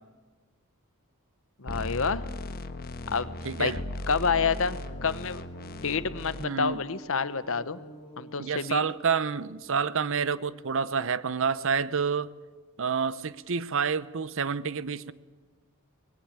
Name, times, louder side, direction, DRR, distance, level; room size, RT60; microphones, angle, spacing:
voice 1, 1.6-2.2 3.1-3.3 3.6-3.7 4.1-5.4 5.8-7.8 8.2-8.8, left 5 dB, 65° left, 14 dB, 1.0 m, -28 dB
sound 1, 1.7-6.4, left 1 dB, 45° left, 1.3 m, -37 dB
sound 2, 3.0-10.9, right 1 dB, 25° left, 3.7 m, -51 dB
voice 2, 3.4-3.8 6.4-6.8 8.4-12.3 12.8-15.1, right 6 dB, 60° right, 17 dB, 0.7 m, -28 dB
24.5 x 20.5 x 8.8 m, 1.4 s
head